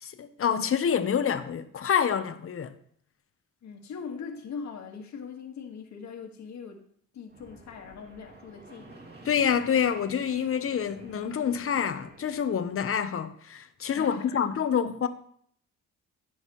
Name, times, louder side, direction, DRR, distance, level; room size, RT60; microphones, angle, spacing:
voice 1, 0.0-2.7 9.2-15.1, left 8 dB, 45° left, 1.0 m, -27 dB
voice 2, 3.6-6.9 7.1-9.0 13.9-14.4, left 6 dB, 65° left, 1.8 m, -40 dB
Fixed-wing aircraft airplane, 7.3-12.9, right 2 dB, 35° right, 2.4 m, -51 dB
15.5 x 6.4 x 3.1 m
cardioid pair, 90°, 30 cm